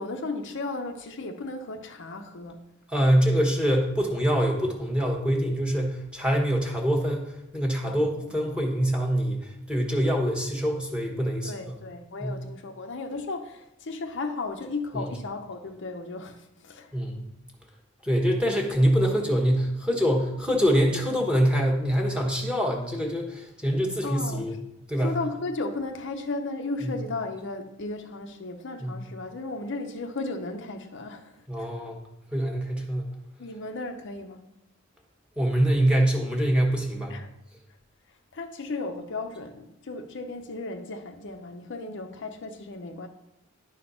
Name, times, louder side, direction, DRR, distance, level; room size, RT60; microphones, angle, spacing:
voice 1, 0.0-2.6 7.9-8.3 11.4-17.0 24.0-24.6 25.0-31.7 33.4-34.4 37.1-37.3 38.3-43.1, left 3 dB, 60° left, 0.7 m, -35 dB
voice 2, 2.9-11.7 12.2-12.3 16.9-17.2 18.0-24.6 24.9-25.1 26.8-26.9 28.8-29.0 31.5-32.0 32.3-33.1 35.4-37.1, equal, 5° right, 1.3 m, -25 dB
10.5 x 4.3 x 5.5 m
head